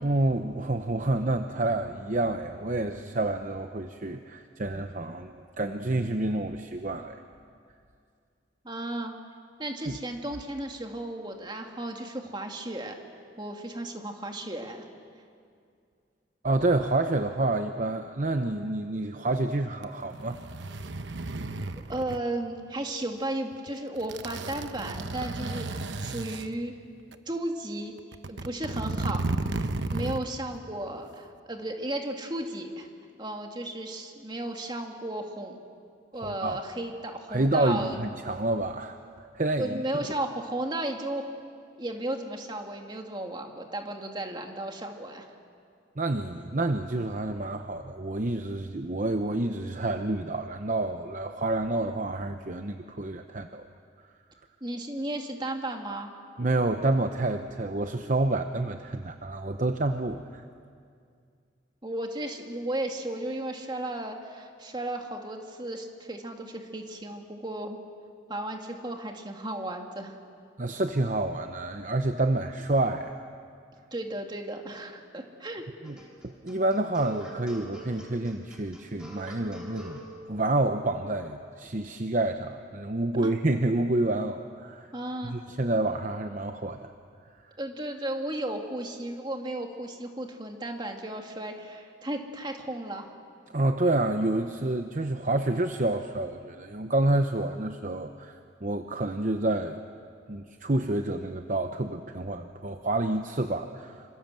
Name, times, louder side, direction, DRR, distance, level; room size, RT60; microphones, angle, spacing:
voice 1, 0.0-7.2 9.9-10.0 16.4-20.4 36.1-36.6 37.3-39.8 46.0-53.7 56.4-60.4 70.6-73.3 75.8-76.0 76.2-80.0 80.3-84.9 85.2-86.9 87.4-87.6 93.5-99.8 100.3-104.1, right 2 dB, 40° right, 7 dB, 0.8 m, -28 dB
voice 2, 8.6-9.1 9.6-12.9 13.4-14.9 21.9-26.7 27.3-28.0 28.3-29.2 29.5-32.9 33.2-35.6 36.1-38.0 39.6-41.2 41.8-45.3 54.6-56.1 61.8-67.8 68.3-70.2 73.9-75.6 83.2-83.3 84.9-85.3 87.6-93.1, right 1 dB, 25° right, 3 dB, 2.2 m, -34 dB
sound 1, 19.7-22.2 23.5-23.7 24.0-26.5 27.1-27.2 28.0-30.3 30.5-30.6, right 2 dB, 70° right, 1.0 m, -33 dB
sound 2, 75.8-80.1, right 1 dB, 5° right, 3.9 m, -44 dB
26.0 x 26.0 x 7.6 m, 2.3 s
head